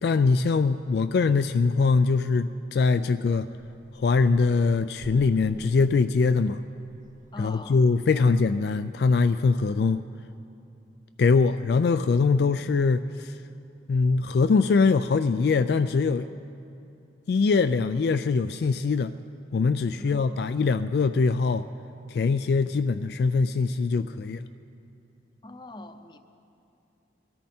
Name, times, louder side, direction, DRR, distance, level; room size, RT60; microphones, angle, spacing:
voice 1, 0.0-3.5 3.9-6.6 7.4-10.0 11.2-13.4 13.9-16.3 17.3-19.1 19.5-21.7 22.1-24.5, left 4 dB, 60° left, 11 dB, 0.3 m, -22 dB
sound 1, 2.7-7.7, equal, 40° right, 1.2 m, -51 dB
voice 2, 7.3-7.9 8.1-8.3 20.0-20.5 25.4-26.2, left 1 dB, 25° left, 9 dB, 0.6 m, -42 dB
22.5 x 13.5 x 4.3 m, 2.7 s
head